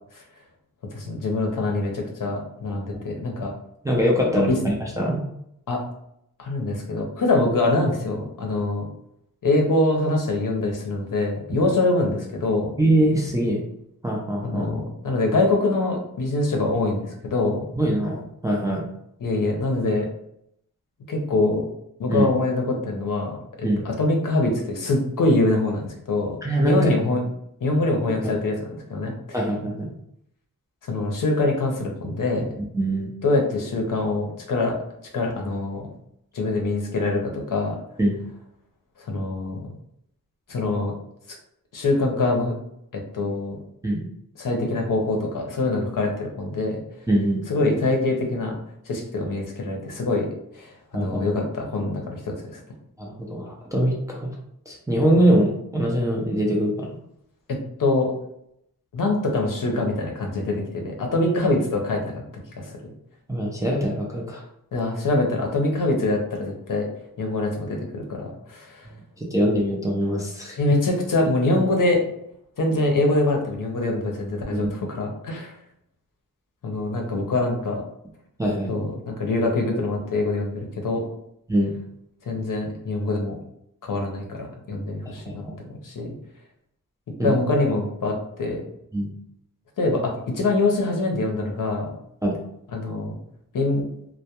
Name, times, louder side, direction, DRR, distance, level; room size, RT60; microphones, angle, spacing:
voice 1, 0.9-3.5 4.5-4.6 5.7-5.8 6.4-8.8 9.4-12.7 14.4-17.6 19.2-20.1 21.1-21.7 22.0-26.4 26.6-27.2 27.6-29.1 30.9-32.5 33.2-34.8 35.1-35.8 36.3-37.8 39.1-39.6 40.5-40.9 41.7-42.5 42.9-43.6 44.4-46.8 47.5-48.6 48.9-50.3 50.5-52.3 57.8-58.1 58.9-62.2 62.6-62.7 64.7-66.9 67.2-68.8 70.6-72.0 72.6-75.5 76.6-77.8 78.7-81.0 82.3-83.4 83.8-85.4 85.8-86.1 87.2-88.6 89.8-91.9 92.7-93.2 93.5-93.8, left 2 dB, 60° left, 1 dB, 0.7 m, -24 dB
voice 2, 3.8-5.2 11.6-11.7 12.8-13.6 14.0-14.7 17.8-18.8 22.1-22.3 23.6-23.8 26.4-26.9 28.1-28.3 29.3-29.9 32.7-33.1 38.0-38.2 43.8-44.1 47.1-47.4 50.9-51.2 53.0-54.3 54.7-56.9 63.3-64.4 69.2-70.6 74.5-74.8 77.1-77.2 78.4-78.7 81.5-81.7 85.3-85.4 87.2-87.3 88.9-89.1 92.2-92.4, right 1 dB, 10° right, -3 dB, 0.4 m, -23 dB
2.2 x 2.1 x 2.8 m, 0.75 s
wide cardioid pair, 110°, 37 cm